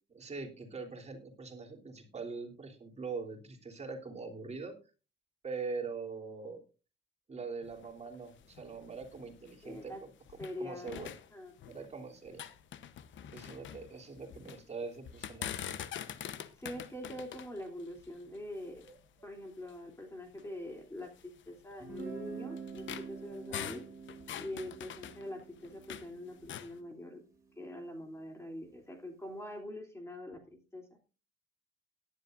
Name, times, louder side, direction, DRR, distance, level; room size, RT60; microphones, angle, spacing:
voice 1, 0.1-4.8 5.4-6.6 7.3-10.1 10.6-11.1 11.7-12.4 13.3-15.5 18.9-19.0, right 4 dB, 35° right, 1 dB, 3.4 m, -42 dB
sound 1, 7.6-10.6 10.9-11.9 12.2-14.6 15.0-19.1 19.7-19.8 20.3-20.4 21.2-26.1 26.4-26.8, left 10 dB, 70° left, 1.0 m, -45 dB
voice 2, 9.6-10.0 10.4-11.5 16.6-18.8 19.2-23.8 24.4-27.2 27.6-31.0, left 1 dB, 15° left, 2 dB, 3.0 m, -44 dB
Guitar, 21.8-27.6, right 6 dB, 15° right, 7.6 m, -47 dB
17.5 x 11.0 x 2.6 m, 0.33 s
cardioid pair, 90°, 20 cm